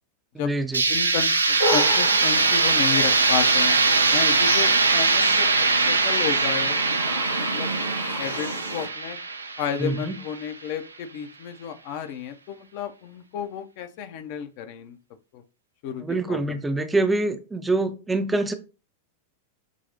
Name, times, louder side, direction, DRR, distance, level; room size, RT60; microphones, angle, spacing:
voice 1, 0.3-0.8 9.8-10.2 16.0-18.5, right 2 dB, 10° right, 0.4 m, -25 dB
sound 1, 0.7-10.5, right 3 dB, 75° right, 0.3 m, -22 dB
voice 2, 0.9-3.8 4.1-6.8 7.4-7.7 8.2-9.2 9.6-15.0 15.3-15.4 15.8-16.4, left 8 dB, 45° left, 0.5 m, -32 dB
sound 2, 1.6-8.9, equal, 90° left, 0.8 m, -32 dB
6.1 x 2.0 x 2.7 m
figure-of-eight pair, 90°, 0 cm